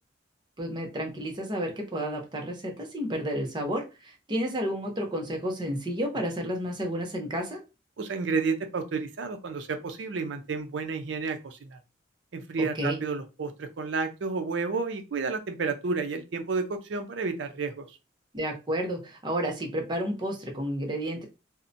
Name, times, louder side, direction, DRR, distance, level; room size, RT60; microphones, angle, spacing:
voice 1, 0.6-7.6 12.6-13.0 18.3-21.3, equal, 25° right, 0.6 m, -31 dB
voice 2, 8.0-11.8 12.3-18.0, right 4 dB, 70° right, 0.5 m, -31 dB
2.7 x 2.1 x 2.5 m
head